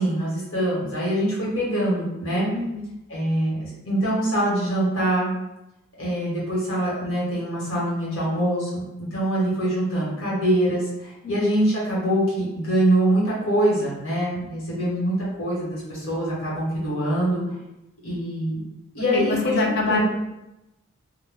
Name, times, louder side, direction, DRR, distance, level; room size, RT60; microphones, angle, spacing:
voice 1, 0.0-2.5 3.1-5.3 6.0-17.4 18.0-18.6 18.9-20.0, right 1 dB, 85° left, -7 dB, 1.1 m, -24 dB
voice 2, 2.5-2.9 11.2-11.3 19.1-20.0, left 4 dB, 55° left, 1 dB, 0.4 m, -24 dB
2.2 x 2.1 x 3.4 m, 0.92 s
head